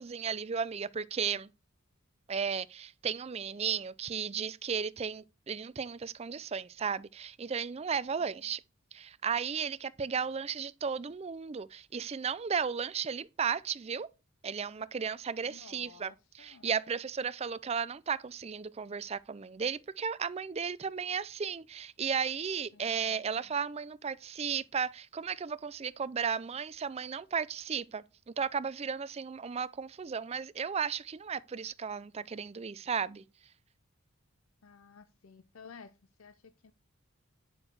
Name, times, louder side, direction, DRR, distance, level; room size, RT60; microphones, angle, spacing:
voice 1, 0.0-1.5 2.3-8.6 8.9-14.1 14.4-33.2, right 6 dB, 30° right, 0.4 m, -35 dB
voice 2, 15.4-16.7 22.7-23.5 34.6-36.7, left 5 dB, 70° left, 0.6 m, -55 dB
9.8 x 6.2 x 4.7 m
head